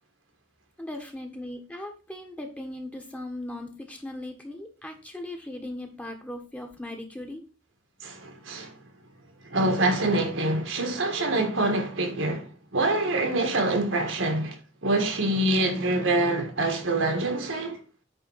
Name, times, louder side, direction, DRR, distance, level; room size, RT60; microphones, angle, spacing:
voice 1, 0.8-7.4, left 1 dB, 5° left, 1.3 m, -38 dB
voice 2, 8.0-8.7 9.4-17.8, right 2 dB, 75° right, 1.8 m, -25 dB
8.9 x 3.8 x 5.7 m
head